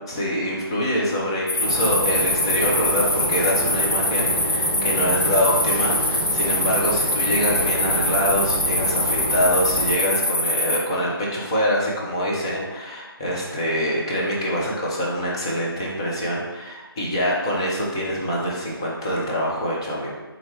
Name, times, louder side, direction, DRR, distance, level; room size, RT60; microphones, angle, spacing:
voice 1, 0.1-20.1, equal, 15° left, -4 dB, 0.4 m, -25 dB
sound 1, 1.5-10.8, left 1 dB, 75° left, 1.1 m, -23 dB
sound 2, 1.6-9.9, right 1 dB, 30° right, 0.7 m, -29 dB
3.5 x 3.2 x 3.2 m, 1.2 s
figure-of-eight pair, 160°, 13 cm